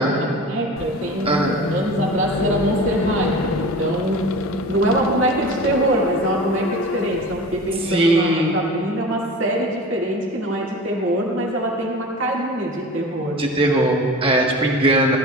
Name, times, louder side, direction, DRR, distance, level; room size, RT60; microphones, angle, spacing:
voice 1, 0.0-4.2 4.7-13.4, right 1 dB, 55° right, -3 dB, 2.2 m, -23 dB
sound 1, 0.8-7.9, left 5 dB, 65° left, 0.3 m, -28 dB
voice 2, 1.2-1.6 7.9-8.6 13.4-15.2, right 1 dB, 25° right, 0 dB, 1.2 m, -18 dB
19.0 x 13.0 x 2.3 m, 2.6 s
head